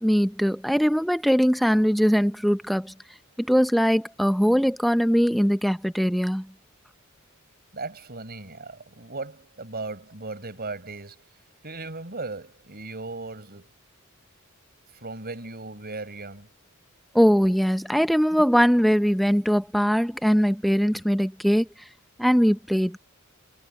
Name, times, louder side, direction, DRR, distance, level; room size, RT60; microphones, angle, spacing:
voice 1, 0.0-2.9 3.4-6.5 17.1-21.7 22.2-23.0, equal, ahead, 0.7 m, -21 dB
voice 2, 7.7-11.2 11.6-13.7 14.9-16.5, right 3 dB, 45° right, 6.2 m, -37 dB
head